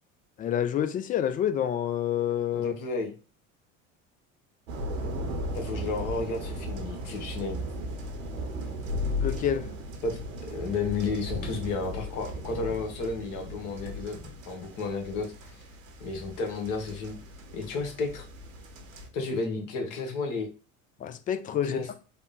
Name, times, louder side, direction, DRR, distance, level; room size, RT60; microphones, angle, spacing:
voice 1, 0.4-2.7 9.2-9.7 21.0-21.9, left 10 dB, 20° left, 0.3 m, -28 dB
voice 2, 2.5-3.1 5.5-7.6 10.0-10.2 10.5-14.2 14.5-15.6 16.0-17.2 17.5-18.3 19.1-20.5 21.6-21.9, left 4 dB, 45° left, 1.2 m, -32 dB
sound 1, 4.7-19.1, equal, 70° right, 0.9 m, -36 dB
3.4 x 2.0 x 3.9 m
figure-of-eight pair, 65°, 41 cm